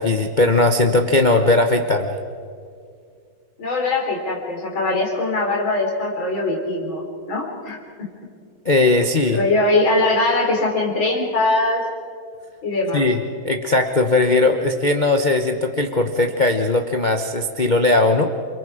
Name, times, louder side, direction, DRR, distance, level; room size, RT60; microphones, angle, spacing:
voice 1, 0.0-2.2 8.6-9.4 12.9-18.3, left 2 dB, 50° left, 5 dB, 0.5 m, -18 dB
voice 2, 3.6-7.8 9.3-11.9 12.6-13.1, left 2 dB, 65° left, -1 dB, 4.5 m, -21 dB
29.0 x 23.0 x 5.0 m, 2.2 s
omnidirectional pair, 2.4 m